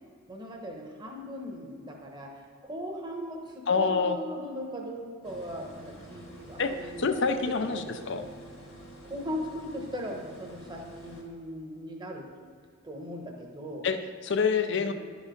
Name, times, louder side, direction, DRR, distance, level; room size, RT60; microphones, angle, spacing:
voice 1, 0.3-7.1 7.5-8.3 9.0-12.3 12.8-13.8 14.7-14.9, equal, 20° right, 0 dB, 1.0 m, -39 dB
voice 2, 3.7-4.2 6.6-6.7 7.0-8.2 13.8-14.9, left 5 dB, 55° left, 9 dB, 0.5 m, -26 dB
sound 1, 5.2-11.2, right 1 dB, 70° left, 1.9 m, -48 dB
11.0 x 4.9 x 5.2 m, 2.1 s
head